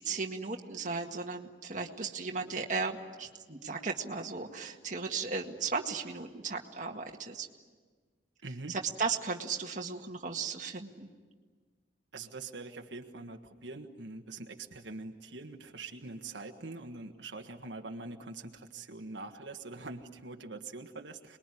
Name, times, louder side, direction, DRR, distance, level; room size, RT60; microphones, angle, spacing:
voice 1, 0.0-7.5 8.7-11.1, right 4 dB, 45° right, 2 dB, 1.9 m, -36 dB
voice 2, 8.4-8.7 12.1-21.4, right 3 dB, 80° right, 4 dB, 1.5 m, -44 dB
27.0 x 21.5 x 9.9 m, 1.5 s
head